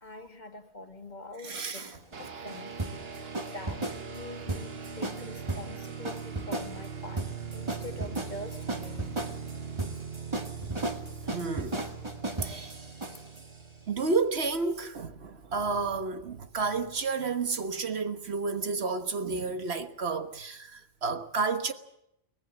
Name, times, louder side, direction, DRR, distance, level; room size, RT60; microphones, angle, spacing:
voice 1, 0.0-1.9 2.2-2.7 3.5-7.3 7.5-9.3, left 2 dB, 45° left, 2.0 m, -44 dB
sound 1, 1.4-13.5, right 2 dB, 25° right, 1.9 m, -36 dB
voice 2, 1.4-2.0 11.2-11.8 12.4-12.7 13.9-21.7, right 4 dB, 85° right, 1.7 m, -31 dB
sound 2, 2.1-14.3, right 6 dB, 70° right, 1.4 m, -41 dB
23.5 x 18.5 x 7.3 m
omnidirectional pair, 1.1 m